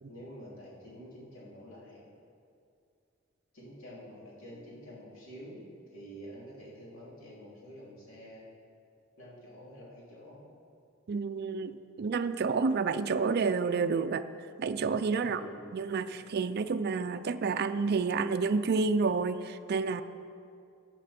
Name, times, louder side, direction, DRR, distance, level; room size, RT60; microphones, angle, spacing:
voice 1, 0.0-2.0 3.5-5.6 5.9-8.4 9.2-10.4 15.2-15.7, equal, 65° left, -6 dB, 3.2 m, -48 dB
voice 2, 11.1-14.2 14.6-15.4 15.7-20.0, right 4 dB, 50° right, 10 dB, 0.4 m, -29 dB
15.0 x 8.6 x 4.3 m, 2.4 s
head